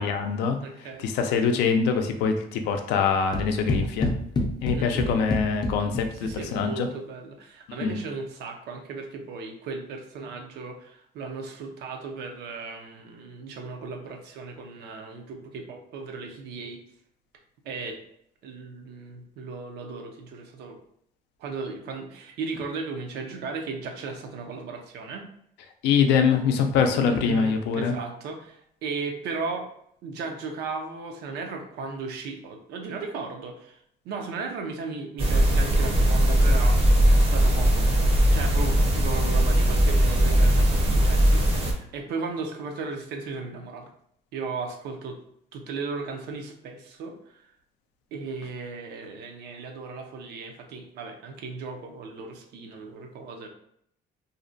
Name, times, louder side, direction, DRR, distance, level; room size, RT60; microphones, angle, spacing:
voice 1, 0.0-0.6 1.0-4.1 4.6-6.9 7.8-8.0 25.8-28.0, left 6 dB, 85° left, 5 dB, 0.4 m, -24 dB
voice 2, 0.6-1.1 4.7-5.2 6.1-16.8 17.6-18.0 18.4-20.8 21.4-25.2 27.0-29.7 30.0-33.8 34.0-36.8 37.1-37.9 38.3-43.9 44.3-45.2 45.5-47.4 48.1-53.5, right 4 dB, 80° right, 3 dB, 0.5 m, -36 dB
sound 1, 3.3-6.6, left 2 dB, 25° left, 0.4 m, -28 dB
sound 2, 35.2-41.7, equal, 35° right, 0.6 m, -20 dB
2.6 x 2.1 x 2.6 m, 0.70 s
cardioid pair, 110°, 17 cm